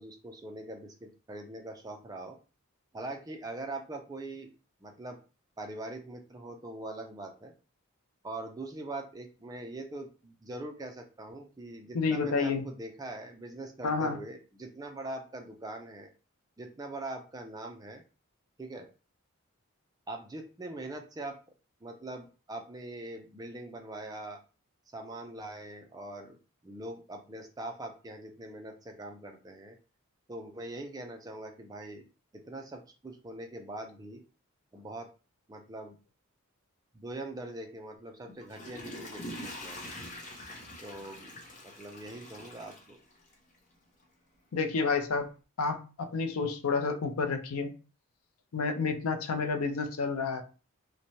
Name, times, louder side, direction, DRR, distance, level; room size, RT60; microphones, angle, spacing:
voice 1, 0.0-2.4 2.9-4.5 4.8-5.2 5.6-7.5 8.2-16.1 16.6-18.0 18.6-18.9 20.1-21.4 21.8-24.4 24.9-26.4 26.6-29.8 30.3-32.1 32.3-34.2 34.7-35.1 35.5-36.0 36.9-39.9 40.8-41.3 41.6-43.0, right 2 dB, 15° right, 3 dB, 0.3 m, -42 dB
voice 2, 11.9-12.6 13.8-14.2 44.5-45.3 45.6-47.7 48.5-50.4, left 4 dB, 80° left, 7 dB, 0.5 m, -30 dB
Water / Toilet flush, 38.3-43.6 44.0-44.1, left 1 dB, 35° left, 0.6 m, -44 dB
3.0 x 2.1 x 2.7 m, 0.33 s
head